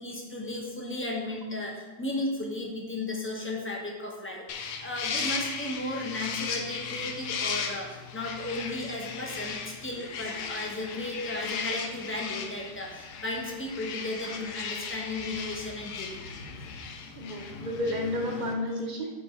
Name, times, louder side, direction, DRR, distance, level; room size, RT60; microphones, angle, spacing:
voice 1, 0.0-16.2 16.6-16.7, left 2 dB, 10° left, -1 dB, 0.6 m, -35 dB
sound 1, 4.5-18.5, left 5 dB, 70° left, 1.3 m, -36 dB
voice 2, 17.2-19.1, left 1 dB, 40° right, 1 dB, 0.7 m, -31 dB
5.1 x 5.0 x 5.6 m, 1.2 s
omnidirectional pair, 1.8 m